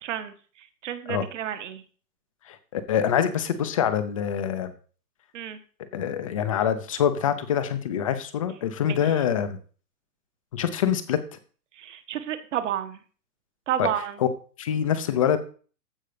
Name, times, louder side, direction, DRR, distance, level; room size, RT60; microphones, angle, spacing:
voice 1, 0.0-1.8 5.3-5.6 8.8-9.2 11.7-13.0 13.7-14.3, right 10 dB, 45° right, 9 dB, 1.4 m, -31 dB
voice 2, 2.5-4.7 5.9-9.6 10.5-11.2 13.8-13.9 14.6-15.4, left 9 dB, 20° left, 11 dB, 0.6 m, -25 dB
14.5 x 5.3 x 5.0 m, 0.41 s
hypercardioid pair, 165°, 48 cm